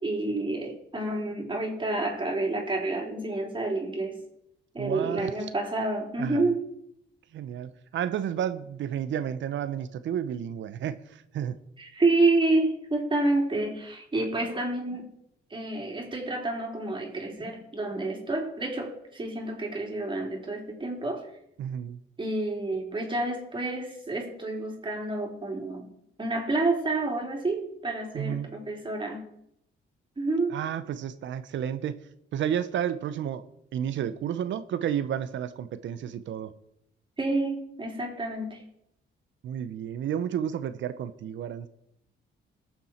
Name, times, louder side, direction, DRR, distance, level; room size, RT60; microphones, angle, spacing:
voice 1, 0.0-4.2 4.7-6.6 11.8-15.1 15.5-21.2 22.2-25.9 26.2-29.3 30.2-30.6 37.2-38.6, right 2 dB, 25° right, 0 dB, 3.4 m, -29 dB
voice 2, 4.8-5.3 6.2-6.5 7.3-11.6 21.6-22.0 28.1-28.5 30.5-32.0 32.3-33.4 33.7-36.5 39.4-41.7, right 9 dB, 70° right, 13 dB, 0.8 m, -31 dB
19.0 x 7.1 x 4.4 m, 0.77 s
cardioid pair, 90°, 20 cm